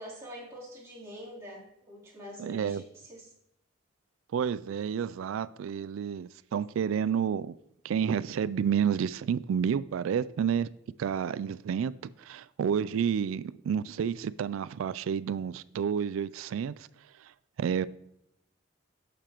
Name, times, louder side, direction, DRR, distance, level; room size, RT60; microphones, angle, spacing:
voice 1, 0.0-2.8 3.1-3.3, equal, 15° right, -9 dB, 3.5 m, -45 dB
voice 2, 2.4-2.8 4.3-7.5 7.8-10.7 11.0-16.9 17.2-17.3 17.6-17.9, right 7 dB, 85° right, 18 dB, 0.3 m, -30 dB
11.0 x 6.7 x 3.0 m, 0.80 s
head